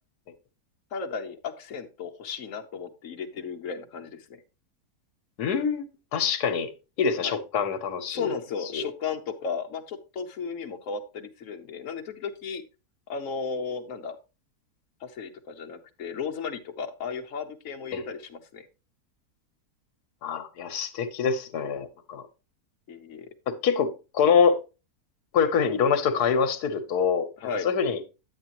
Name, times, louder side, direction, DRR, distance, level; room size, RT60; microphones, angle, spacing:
voice 1, 0.9-4.4 7.2-7.4 8.1-12.6 13.1-14.2 15.0-18.7 22.9-23.3 27.4-27.7, left 5 dB, 60° left, 1.3 m, -35 dB
voice 2, 5.4-5.9 6.1-6.7 7.0-8.3 8.7-8.8 17.9-18.1 20.2-22.2 23.5-24.6 25.3-27.3 27.6-28.0, left 6 dB, 75° left, 1.5 m, -25 dB
9.9 x 8.2 x 3.0 m
omnidirectional pair, 1.7 m